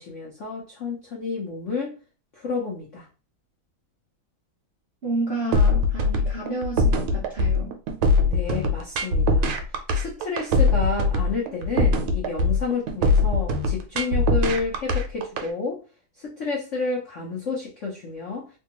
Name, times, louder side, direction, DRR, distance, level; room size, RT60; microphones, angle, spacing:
voice 1, 0.0-2.0 2.3-3.1 8.2-9.5 9.9-15.8 16.2-18.5, left 4 dB, 75° left, 0.6 m, -30 dB
voice 2, 5.0-7.7, right 2 dB, 60° right, 0.6 m, -30 dB
sound 1, 5.5-15.5, left 2 dB, 80° right, 1.4 m, -21 dB
3.4 x 2.3 x 2.8 m
omnidirectional pair, 2.3 m